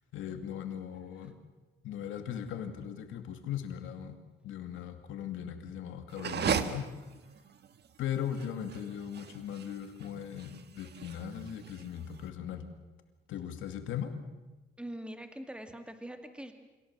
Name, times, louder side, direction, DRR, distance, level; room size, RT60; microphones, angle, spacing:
voice 1, 0.1-1.4 1.8-4.2 4.4-6.9 8.0-12.7 13.3-14.2, left 9 dB, 85° left, 7 dB, 2.5 m, -38 dB
sound 1, 6.1-12.2, right 7 dB, 55° right, 1.4 m, -37 dB
voice 2, 14.8-16.5, right 1 dB, 5° right, 6 dB, 2.4 m, -43 dB
26.5 x 18.0 x 7.5 m, 1.2 s
cardioid pair, 90°, 20 cm